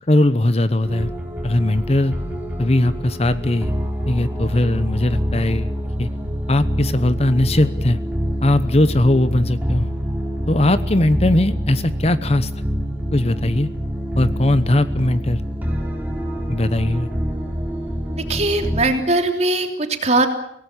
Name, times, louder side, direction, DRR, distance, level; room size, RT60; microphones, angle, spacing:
voice 1, 0.1-1.1 1.4-2.1 2.6-3.7 4.1-5.7 6.0-6.1 6.5-8.0 8.4-9.9 10.5-12.5 13.1-13.7 14.2-15.4 16.5-17.1, left 1 dB, 35° left, 13 dB, 1.0 m, -19 dB
sound 1, 0.8-18.8, equal, 10° right, 4.9 m, -26 dB
voice 2, 18.1-20.3, right 2 dB, 40° right, 5 dB, 3.3 m, -20 dB
25.5 x 18.5 x 8.7 m, 0.72 s
head